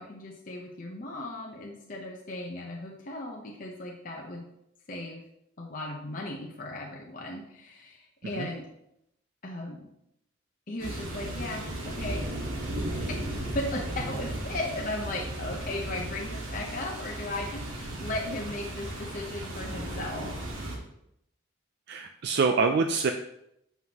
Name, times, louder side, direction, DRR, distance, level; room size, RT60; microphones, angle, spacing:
voice 1, 0.0-4.4 4.9-5.2 5.6-8.7 9.4-9.9 10.7-12.3 13.1-13.2 13.5-20.3, left 2 dB, 40° left, -1 dB, 0.8 m, -36 dB
sound 1, 10.8-20.8, right 1 dB, 85° right, 1.6 m, -35 dB
voice 2, 21.9-23.1, right 4 dB, 55° right, 5 dB, 0.4 m, -25 dB
7.7 x 5.7 x 2.9 m, 0.79 s
head